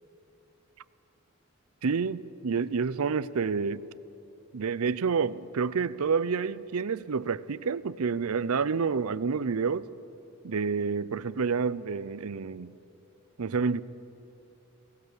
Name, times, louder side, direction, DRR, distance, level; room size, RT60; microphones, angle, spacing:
voice 1, 1.8-3.8 4.5-9.9 10.4-12.8 13.4-13.8, right 5 dB, 70° right, 0.5 m, -29 dB
19.5 x 19.0 x 8.2 m
head